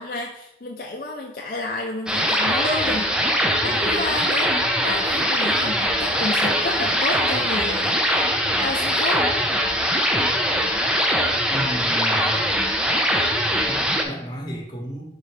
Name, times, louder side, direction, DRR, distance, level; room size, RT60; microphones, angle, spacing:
voice 1, 0.0-3.2 3.6-4.5 4.8-8.4 8.6-9.3, left 2 dB, 50° left, -1 dB, 0.6 m, -30 dB
sound 1, 2.1-14.0, equal, 5° right, 0.6 m, -22 dB
voice 2, 11.5-12.4 13.7-15.0, equal, 25° left, 0 dB, 1.3 m, -32 dB
4.5 x 4.3 x 4.9 m, 0.82 s
head